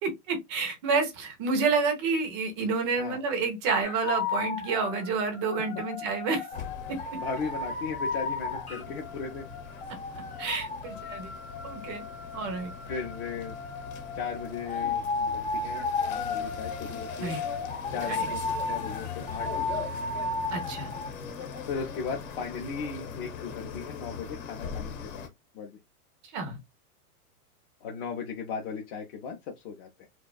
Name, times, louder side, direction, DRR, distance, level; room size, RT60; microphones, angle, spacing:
voice 1, 0.0-6.5 6.9-7.2 10.4-11.3 11.6-12.1 12.3-12.7 17.2-17.4 18.1-18.3 20.5-21.0 26.3-26.6, right 4 dB, 20° right, 0.4 m, -29 dB
sound 1, 3.8-21.1, left 3 dB, 15° left, 0.8 m, -34 dB
sound 2, 6.5-25.3, left 7 dB, 60° left, 0.9 m, -41 dB
voice 2, 7.1-9.5 12.9-13.6 14.1-17.4 17.9-19.8 21.7-25.3 25.5-25.8 27.8-30.1, left 5 dB, 40° left, 0.5 m, -37 dB
2.6 x 2.2 x 2.2 m
supercardioid pair, 150°, 44 cm